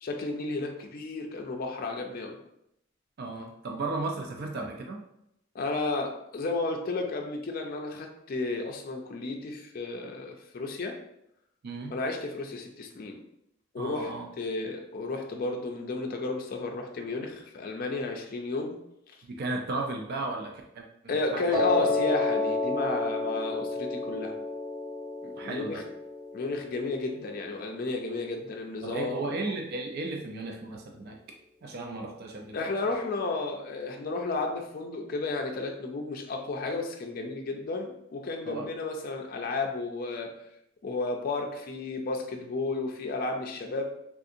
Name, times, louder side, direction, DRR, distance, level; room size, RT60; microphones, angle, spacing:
voice 1, 0.0-2.4 5.5-11.0 11.9-13.2 13.7-18.8 19.1-19.2 21.1-24.3 25.2-25.8 26.3-29.3 32.5-40.3 40.8-43.8, left 3 dB, 45° left, 2 dB, 0.4 m, -33 dB
voice 2, 3.2-5.0 11.6-11.9 13.8-14.3 19.3-21.9 25.4-25.8 28.8-31.2 31.6-32.9 38.4-38.7, right 3 dB, 50° right, 2 dB, 0.4 m, -35 dB
Piano, 21.5-27.7, left 3 dB, 25° right, 1.0 m, -30 dB
3.5 x 2.6 x 2.5 m, 0.78 s
head